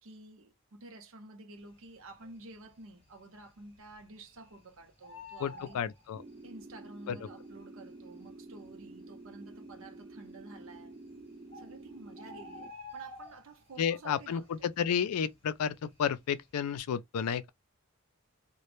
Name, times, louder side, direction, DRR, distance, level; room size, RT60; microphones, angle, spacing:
voice 1, 0.0-5.8 6.4-10.9 11.5-14.5, right 2 dB, 65° right, 0.6 m, -51 dB
Bird, 2.1-2.7 3.0-3.1 3.4-4.6 4.8-6.7 7.5-7.6 8.3-8.4 8.6-8.7 9.3-9.8 10.7-10.8 11.2-11.3 11.5-13.8 14.1-14.5 14.8-16.1 16.5-16.7, left 1 dB, 25° left, 0.9 m, -49 dB
voice 2, 5.4-6.2 7.1-7.2 13.8-17.5, left 7 dB, 85° left, 0.4 m, -32 dB
sound 1, 6.1-12.7, right 2 dB, 25° right, 0.4 m, -49 dB
2.1 x 2.0 x 3.0 m
head